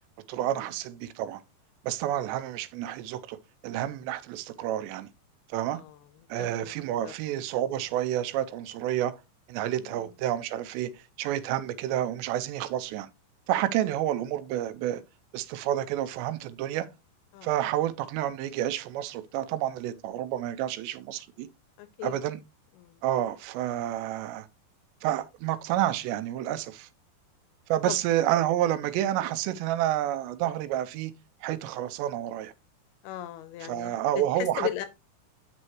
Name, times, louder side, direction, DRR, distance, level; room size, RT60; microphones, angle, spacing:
voice 1, 0.3-1.4 1.8-3.4 3.6-5.1 5.5-5.8 6.3-9.1 9.5-13.1 13.5-15.0 15.3-16.9 17.4-21.5 22.0-22.4 23.0-24.5 25.0-26.9 27.7-31.1 31.4-32.5 33.7-34.7, right 12 dB, 85° right, 2.9 m, -29 dB
voice 2, 6.4-6.7 7.0-7.1 9.8-10.1 17.3-17.5 21.8-22.2 22.8-23.0 27.9-28.0 33.0-34.9, left 14 dB, 80° left, 2.3 m, -37 dB
8.6 x 6.3 x 3.0 m
omnidirectional pair, 5.0 m